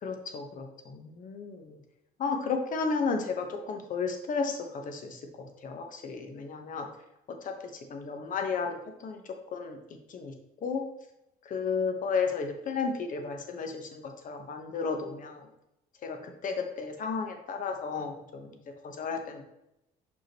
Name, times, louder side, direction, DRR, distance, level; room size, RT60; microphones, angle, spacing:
voice 1, 0.0-1.8 2.2-6.9 7.4-7.5 7.9-9.2 9.5-9.8 10.1-10.3 10.6-10.8 11.4-15.5 16.0-18.5 18.8-19.4, left 5 dB, 50° left, 4 dB, 1.1 m, -33 dB
6.1 x 5.3 x 3.0 m, 0.86 s
cardioid pair, 110°, 17 cm